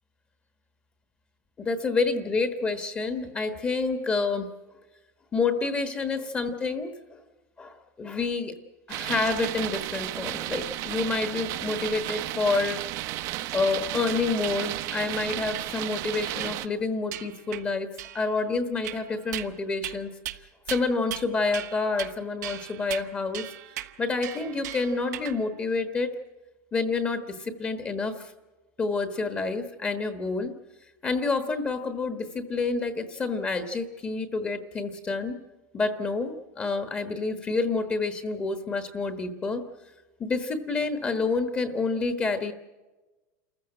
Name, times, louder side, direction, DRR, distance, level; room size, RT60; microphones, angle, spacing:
voice 1, 1.6-4.5 5.3-6.9 7.6-8.5 8.9-12.8 13.5-17.9 18.1-20.1 20.7-23.4 24.0-26.1 26.7-28.3 28.8-30.5 31.0-35.4 35.7-39.6 40.2-42.5, left 3 dB, 15° left, 8 dB, 1.2 m, -28 dB
sound 1, 8.9-16.7, right 15 dB, 40° right, 0.8 m, -33 dB
sound 2, 14.1-14.5 14.9-15.0 15.5-15.7 16.4-16.7 17.1-17.6 18.0-18.4 18.8-19.5 19.8-20.0 20.3-20.4 20.7-21.3 21.5-22.1 22.4-25.4, right 15 dB, 85° right, 1.2 m, -38 dB
28.0 x 15.0 x 7.7 m, 1.2 s
supercardioid pair, 170°, 9 cm